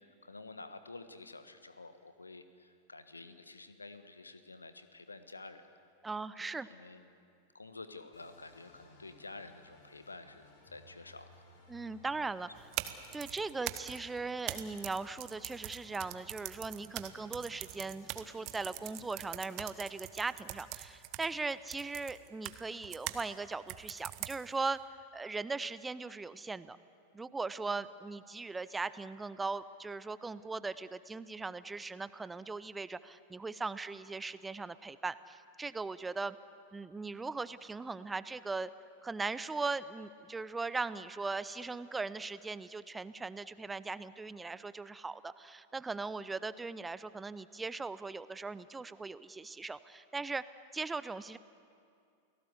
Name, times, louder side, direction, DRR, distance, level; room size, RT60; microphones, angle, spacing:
voice 1, 0.0-5.7 6.4-7.0 7.5-11.3, left 3 dB, 80° left, 10 dB, 1.4 m, -50 dB
voice 2, 6.0-6.7 11.7-12.5 13.1-26.8 27.1-36.4 36.7-38.7 39.0-50.4 50.7-51.4, right 3 dB, 10° right, 16 dB, 0.6 m, -39 dB
sound 1, 8.1-19.6, left 2 dB, 55° left, 5.6 m, -61 dB
sound 2, 12.6-23.3 23.7-24.7, right 16 dB, 40° right, 1.2 m, -43 dB
29.5 x 18.5 x 8.1 m, 2.4 s
figure-of-eight pair, 90°, 0 cm